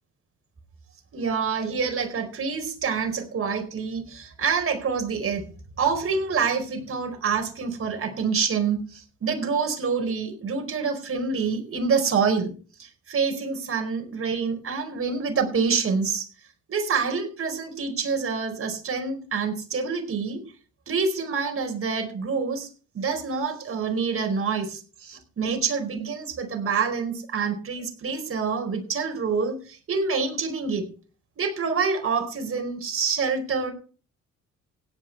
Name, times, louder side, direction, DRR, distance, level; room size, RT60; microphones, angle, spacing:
voice 1, 1.1-5.5 5.8-12.5 12.8-16.3 16.7-20.4 20.9-22.7 22.9-30.9 31.4-33.7, right 5 dB, 45° right, 4 dB, 4.5 m, -27 dB
17.0 x 8.9 x 4.6 m, 0.38 s
cardioid pair, 90°, 30 cm